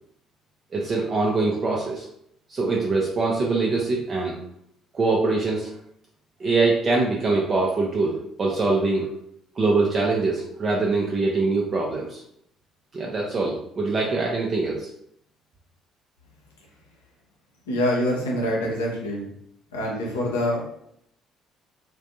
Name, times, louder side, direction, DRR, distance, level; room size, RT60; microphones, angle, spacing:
voice 1, 0.7-2.1 2.5-4.4 4.9-5.7 6.4-9.1 9.6-12.2 12.9-14.9, right 3 dB, 35° right, -3 dB, 0.4 m, -23 dB
voice 2, 17.7-19.3 19.7-20.6, left 1 dB, 75° left, -3 dB, 0.6 m, -25 dB
2.4 x 2.2 x 2.6 m, 0.71 s
figure-of-eight pair, 50°, 0 cm